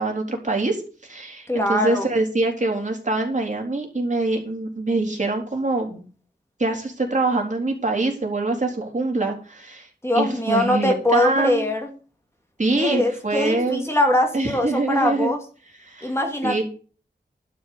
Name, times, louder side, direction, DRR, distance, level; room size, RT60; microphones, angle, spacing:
voice 1, 0.0-6.0 6.6-9.9 10.1-11.7 12.6-13.8 14.3-15.3 15.8-16.1 16.4-16.6, right 2 dB, 40° right, 0 dB, 4.1 m, -24 dB
voice 2, 1.5-2.1 10.0-11.9 12.8-15.4 16.0-16.6, left 1 dB, 15° left, 2 dB, 2.6 m, -22 dB
12.0 x 6.0 x 8.6 m, 0.39 s
wide cardioid pair, 75°, 18 cm